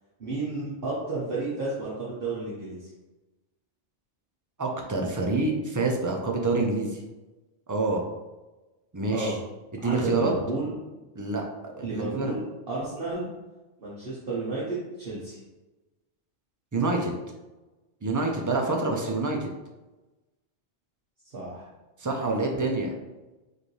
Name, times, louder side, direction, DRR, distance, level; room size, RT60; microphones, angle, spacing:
voice 1, 0.2-2.9 9.1-9.3 9.8-10.7 11.8-13.3 13.8-15.4 21.3-21.7, right 3 dB, 55° right, -8 dB, 1.1 m, -32 dB
voice 2, 4.6-7.0 7.7-8.0 8.9-9.4 9.8-10.3 11.2-12.4 16.7-17.1 18.0-19.5 22.0-22.9, right 3 dB, 30° right, 1 dB, 0.4 m, -27 dB
5.2 x 2.7 x 3.2 m, 1.1 s
omnidirectional pair, 1.2 m